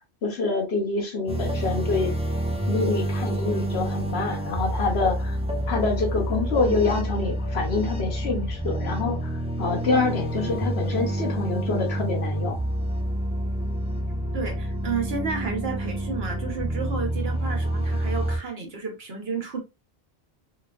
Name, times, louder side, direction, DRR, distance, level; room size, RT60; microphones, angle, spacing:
voice 1, 0.2-2.1 2.7-5.4 5.7-12.6, left 3 dB, 90° left, 1.2 m, -26 dB
sound 1, 1.3-18.4, right 1 dB, 10° right, 0.5 m, -28 dB
voice 2, 14.3-19.6, right 5 dB, 75° right, 1.3 m, -31 dB
3.1 x 3.0 x 2.4 m
omnidirectional pair, 1.0 m